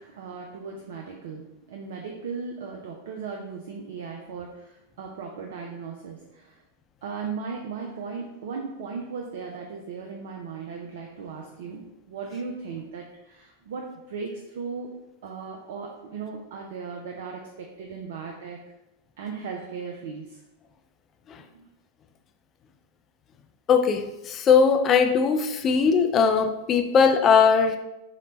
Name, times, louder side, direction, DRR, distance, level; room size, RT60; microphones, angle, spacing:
voice 1, 0.0-6.6 7.0-14.9 15.2-18.6 19.2-20.4 21.5-21.7, right 5 dB, 55° right, 1 dB, 0.3 m, -37 dB
voice 2, 23.7-27.8, left 6 dB, 30° left, 5 dB, 0.3 m, -20 dB
3.8 x 2.1 x 3.0 m, 0.94 s
figure-of-eight pair, 90°, 0 cm